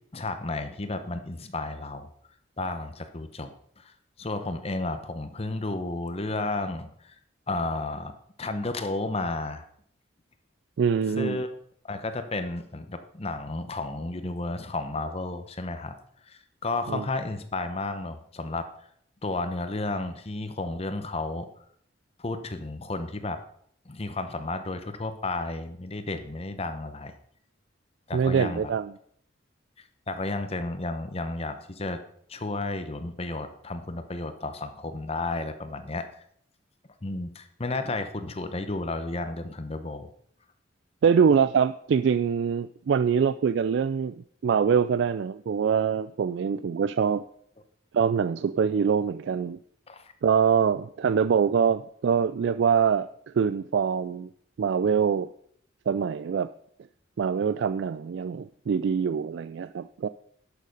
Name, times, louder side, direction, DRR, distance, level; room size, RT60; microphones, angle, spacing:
voice 1, 0.1-2.1 2.6-3.5 3.8-3.9 4.2-7.1 7.5-8.1 8.4-9.6 11.2-11.5 11.8-15.9 16.3-18.7 19.2-21.5 22.2-23.4 23.9-27.1 28.1-28.7 30.1-32.0 32.3-36.1 37.0-40.1 49.9-50.1, left 2 dB, 30° left, 9 dB, 0.8 m, -32 dB
voice 2, 10.8-11.4 16.9-17.0 28.1-28.9 41.0-44.1 44.4-47.2 47.9-49.6 50.2-53.1 53.3-54.3 54.6-55.3 55.9-56.5 57.2-60.1, right 6 dB, 65° right, 13 dB, 0.3 m, -24 dB
11.5 x 6.6 x 5.3 m, 0.65 s
head